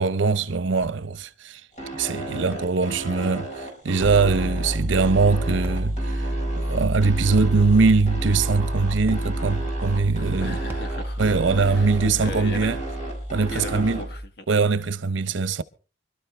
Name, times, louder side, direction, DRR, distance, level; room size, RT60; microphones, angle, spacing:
voice 1, 0.0-1.6 1.9-6.2 6.6-10.6 11.2-12.8 13.3-14.0 14.5-15.6, right 4 dB, 90° right, 0.6 m, -22 dB
sound 1, 0.8-1.0 2.5-2.8 4.0-4.3 5.6-5.9 7.4-7.6 9.1-9.3 10.7-11.0 12.3-12.5, right 1 dB, 10° right, 0.9 m, -38 dB
sound 2, 1.8-14.0, right 2 dB, 40° left, 4.6 m, -35 dB
Piano, 4.0-14.3, equal, 5° left, 2.0 m, -29 dB
voice 2, 10.4-11.9 12.1-12.8 13.5-14.5, left 2 dB, 60° left, 1.3 m, -37 dB
25.5 x 12.0 x 3.3 m
head